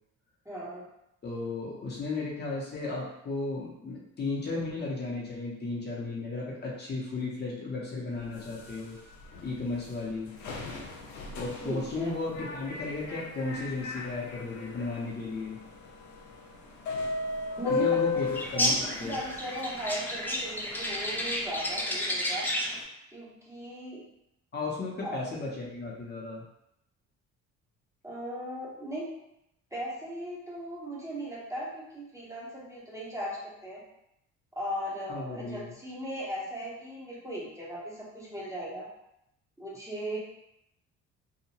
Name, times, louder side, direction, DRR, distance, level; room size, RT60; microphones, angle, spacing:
voice 1, 0.4-0.9 11.6-12.1 17.6-17.9 18.1-18.2 18.5-22.5 23.1-24.0 25.0-25.2 28.0-29.1 29.7-33.8 34.5-38.9 39.6-40.2, right 1 dB, 10° right, -6 dB, 0.8 m, -37 dB
voice 2, 1.2-9.0 9.4-10.3 11.3-15.6 17.8-18.3 18.5-19.1 24.5-26.4 35.1-35.7, left 3 dB, 35° left, -4 dB, 0.7 m, -34 dB
sound 1, 8.1-19.6 20.5-20.6 21.0-21.2 21.8-21.9, left 5 dB, 80° left, 0.6 m, -36 dB
sound 2, 18.3-22.8, left 1 dB, 5° left, 0.4 m, -31 dB
2.8 x 2.2 x 2.8 m, 0.80 s
cardioid pair, 100°, 29 cm